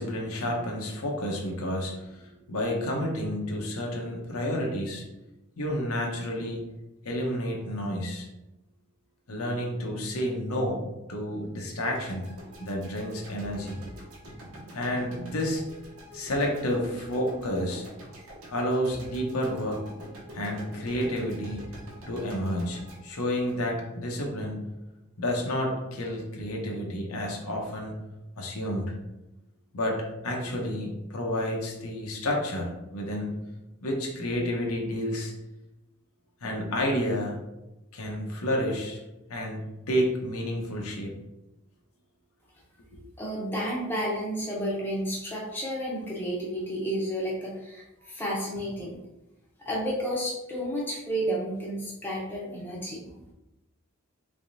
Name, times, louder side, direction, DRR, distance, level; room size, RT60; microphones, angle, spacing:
voice 1, 0.0-5.1 5.6-6.6 7.0-8.3 9.3-12.3 12.6-13.8 14.7-15.6 16.1-17.8 18.5-19.9 20.3-21.6 22.1-24.7 25.2-28.0 28.4-28.9 29.7-33.4 33.8-35.3 36.4-37.4 37.9-39.0 39.3-39.6 39.9-41.1, equal, 85° left, 0 dB, 0.8 m, -30 dB
sound 1, 11.9-24.2, equal, 90° right, 1.0 m, -46 dB
voice 2, 43.2-49.0 49.6-53.2, equal, 10° left, -5 dB, 0.7 m, -31 dB
3.4 x 3.4 x 2.6 m, 0.96 s
head